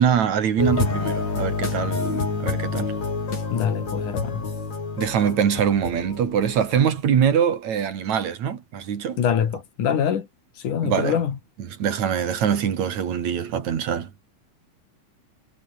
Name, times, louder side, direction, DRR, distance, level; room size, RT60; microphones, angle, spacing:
voice 1, 0.0-2.9 5.0-9.2 10.8-11.2 11.8-14.1, right 8 dB, 65° right, 3.4 m, -23 dB
sound 1, 0.6-7.0, left 4 dB, 60° left, 6.9 m, -28 dB
voice 2, 3.5-4.5 9.2-10.3 10.6-11.4, left 8 dB, 75° left, 4.0 m, -24 dB
omnidirectional pair, 3.6 m